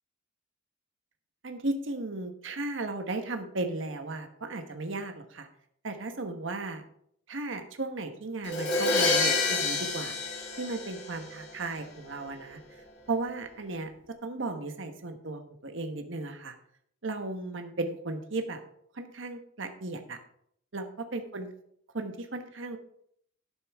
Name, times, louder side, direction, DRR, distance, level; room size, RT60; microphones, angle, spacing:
voice 1, 1.4-5.5 5.8-6.8 7.3-10.1 10.6-12.6 13.1-13.9 14.2-16.5 17.0-18.6 18.9-20.2 20.7-21.5 21.9-22.8, right 2 dB, 65° right, 6 dB, 1.2 m, -35 dB
Crash cymbal, 8.5-11.4, left 3 dB, 55° left, 1.7 m, -27 dB
12.0 x 9.1 x 3.5 m, 0.68 s
head